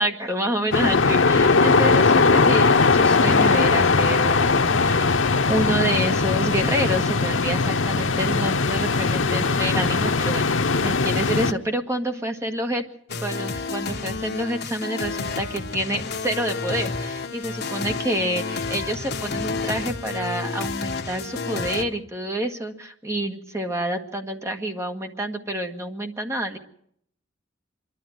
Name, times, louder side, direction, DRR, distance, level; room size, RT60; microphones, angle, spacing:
voice 1, 0.0-5.2 5.5-10.5 10.8-12.8 13.2-26.6, right 1 dB, 15° right, 5 dB, 1.6 m, -28 dB
sound 1, 0.7-11.5, left 4 dB, 80° left, 0.8 m, -19 dB
sound 2, 13.1-21.8, left 4 dB, 60° left, 1.4 m, -30 dB
25.5 x 11.5 x 9.2 m, 0.68 s
head